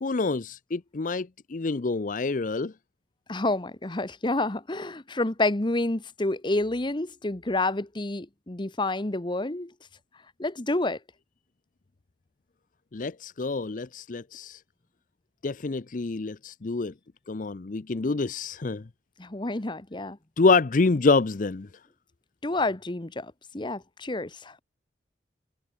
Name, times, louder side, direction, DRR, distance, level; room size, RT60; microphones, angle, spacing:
voice 1, 0.0-2.7 12.9-14.6 15.4-16.9 17.3-18.8 20.4-21.7, left 3 dB, 50° left, 0.6 m, -26 dB
voice 2, 3.3-9.7 10.4-11.0 19.2-20.2 22.4-24.6, left 2 dB, 25° left, 1.1 m, -29 dB
head